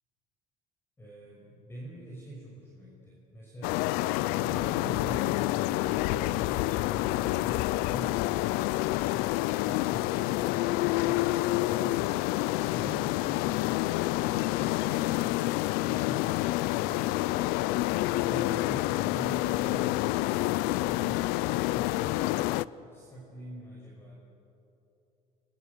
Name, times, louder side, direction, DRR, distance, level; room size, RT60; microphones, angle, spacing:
voice 1, 1.0-3.9 4.3-13.7 14.2-17.6 18.1-20.4 20.7-24.1, right 1 dB, 15° left, -4 dB, 6.0 m, -46 dB
sound 1, 3.6-22.6, left 18 dB, 90° left, 0.5 m, -28 dB
30.0 x 24.5 x 6.8 m, 3.0 s
cardioid pair, 125°, 15 cm